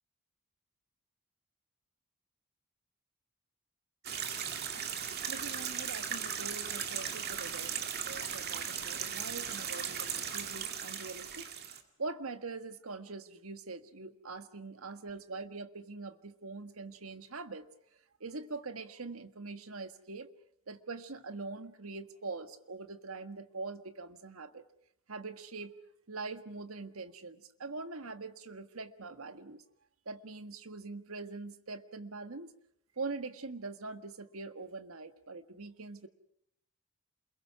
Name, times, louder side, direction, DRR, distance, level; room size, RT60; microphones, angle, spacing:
sound 1, 4.0-11.8, right 8 dB, 50° right, 2.3 m, -37 dB
voice 1, 5.3-11.5 12.0-17.7 18.2-20.3 20.7-24.6 25.1-25.7 26.1-29.6 30.0-32.5 32.9-36.1, right 3 dB, 75° right, 9 dB, 1.6 m, -43 dB
28.5 x 22.5 x 6.1 m, 0.71 s
head